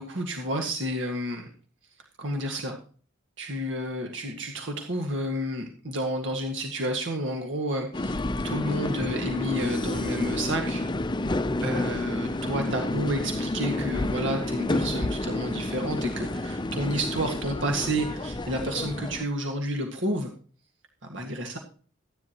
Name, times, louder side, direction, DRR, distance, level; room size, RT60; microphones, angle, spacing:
voice 1, 0.0-1.5 2.2-2.8 3.4-10.8 11.6-20.3 21.1-21.6, equal, 65° right, 3 dB, 1.9 m, -30 dB
sound 1, 7.9-19.2, left 2 dB, 20° left, 0.6 m, -30 dB
14.5 x 11.0 x 3.0 m, 0.41 s
head